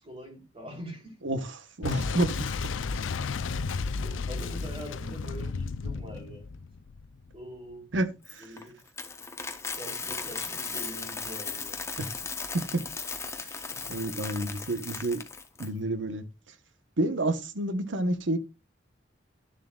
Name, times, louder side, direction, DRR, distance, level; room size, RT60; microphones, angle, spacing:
voice 1, 0.0-1.2 4.0-6.6 7.3-8.1 8.4-8.8 9.8-11.8 13.7-14.2, equal, 30° right, 3.7 m, -44 dB
voice 2, 1.2-2.6 7.9-8.1 12.0-12.1 12.5-12.8 13.9-15.2 15.6-16.2 17.0-18.4, right 1 dB, 75° right, 1.1 m, -29 dB
Boom, 1.8-7.4, left 4 dB, 85° left, 0.5 m, -33 dB
Coin (dropping), 8.2-15.7, left 4 dB, 15° left, 0.8 m, -37 dB
11.0 x 7.2 x 2.4 m
head